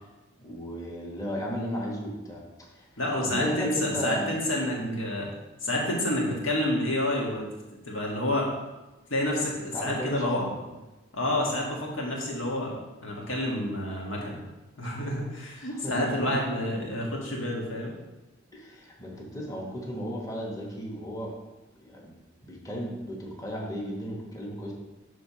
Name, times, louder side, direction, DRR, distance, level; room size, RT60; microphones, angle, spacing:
voice 1, 0.4-2.4 2.7-2.8 3.2-4.3 4.8-5.0 9.7-10.5 15.6-16.4 18.5-21.3 21.8-22.1 22.4-24.7, equal, 20° left, -2 dB, 1.1 m, -34 dB
voice 2, 3.0-5.3 5.6-7.4 7.7-8.5 9.1-10.4 11.1-12.7 13.0-14.4 14.8-17.9, left 1 dB, 75° left, -2 dB, 1.6 m, -29 dB
6.6 x 3.4 x 5.6 m, 1.1 s
head